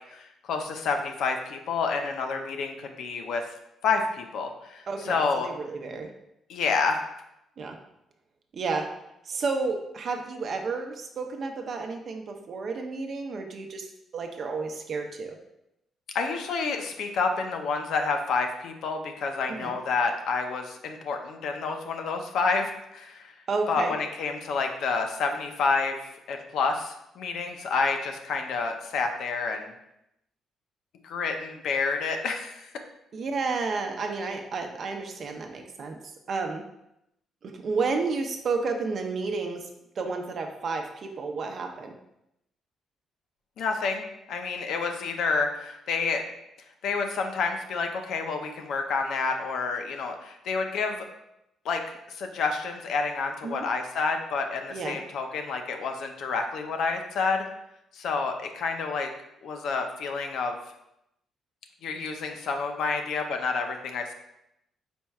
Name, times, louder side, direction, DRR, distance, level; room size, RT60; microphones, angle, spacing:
voice 1, 0.1-3.4 3.8-5.5 6.5-7.1 16.1-23.3 23.7-26.0 26.3-29.7 31.0-32.7 43.6-46.2 46.8-51.1 51.6-57.4 57.9-59.1 59.4-60.6 61.8-64.1, left 4 dB, 75° left, 4 dB, 0.5 m, -29 dB
voice 2, 4.9-6.1 7.6-7.8 8.5-8.9 9.2-13.9 14.1-15.4 19.6-19.7 23.5-23.9 33.1-36.6 37.4-39.7 40.0-42.0 53.4-53.7 54.7-55.0, right 4 dB, 55° right, 4 dB, 0.6 m, -31 dB
4.3 x 4.3 x 2.3 m, 0.84 s
cardioid pair, 90°, 0 cm